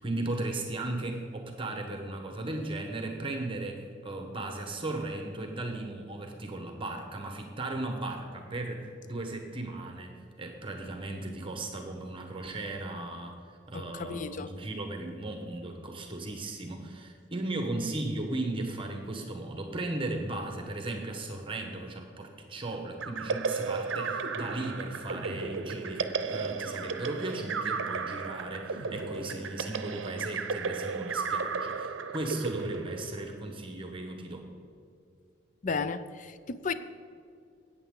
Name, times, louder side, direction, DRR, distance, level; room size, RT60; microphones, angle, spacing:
voice 1, 0.0-10.1 10.4-13.3 13.7-34.5, right 2 dB, 30° right, 3 dB, 1.1 m, -36 dB
voice 2, 13.7-14.5 35.6-36.7, left 5 dB, 40° left, 12 dB, 0.5 m, -34 dB
sound 1, 23.0-33.6, right 4 dB, 85° right, 0.7 m, -34 dB
14.0 x 8.9 x 3.8 m, 2.3 s
head